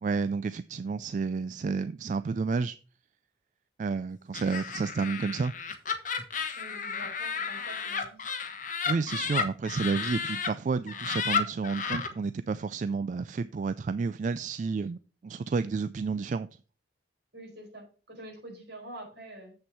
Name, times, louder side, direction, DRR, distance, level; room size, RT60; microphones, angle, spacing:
voice 1, 0.0-2.8 3.8-5.5 6.4-6.6 8.9-16.5, right 4 dB, 45° right, 0.3 m, -30 dB
Laughter, 4.3-10.5 10.9-12.1, left 6 dB, 45° left, 1.2 m, -32 dB
voice 2, 6.6-8.2 17.3-19.5, right 1 dB, 70° right, 4.8 m, -46 dB
7.9 x 6.9 x 4.6 m
head